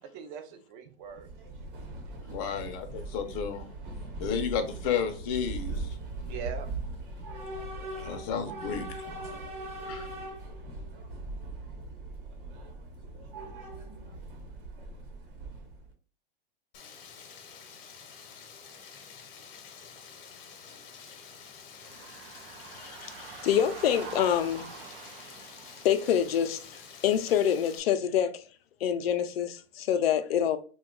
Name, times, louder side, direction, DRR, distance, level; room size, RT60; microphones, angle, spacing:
voice 1, 0.1-1.3 1.8-2.3 6.3-6.7, right 7 dB, 30° right, 0.4 m, -42 dB
Train / Subway metro underground, 1.1-15.9, right 2 dB, 60° right, 1.0 m, -40 dB
voice 2, 2.3-3.7 4.2-5.9 7.9-9.1 9.8-10.1, left 7 dB, 35° left, 0.5 m, -32 dB
Rain, 16.7-27.8, left 6 dB, 65° left, 0.8 m, -49 dB
sound 1, 21.8-27.0, right 6 dB, 75° right, 0.6 m, -46 dB
voice 3, 22.7-24.7 25.8-26.6 27.0-28.3 28.8-30.6, left 9 dB, 90° left, 0.5 m, -26 dB
2.7 x 2.3 x 3.7 m
supercardioid pair, 150°, 29 cm